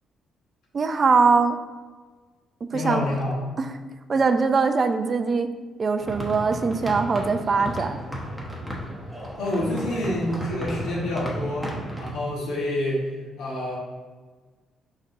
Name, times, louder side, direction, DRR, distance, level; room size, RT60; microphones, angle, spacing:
voice 1, 0.7-1.6 2.7-3.0 3.6-3.7 4.1-5.5 5.8-8.0, right 4 dB, 40° right, 8 dB, 0.4 m, -21 dB
voice 2, 2.7-3.4 9.4-13.1 13.4-13.8, left 1 dB, 85° left, -4 dB, 1.3 m, -27 dB
sound 1, 6.0-12.1, equal, 5° left, 1.0 m, -34 dB
5.0 x 4.1 x 2.6 m, 1.4 s
cardioid pair, 90°, 0 cm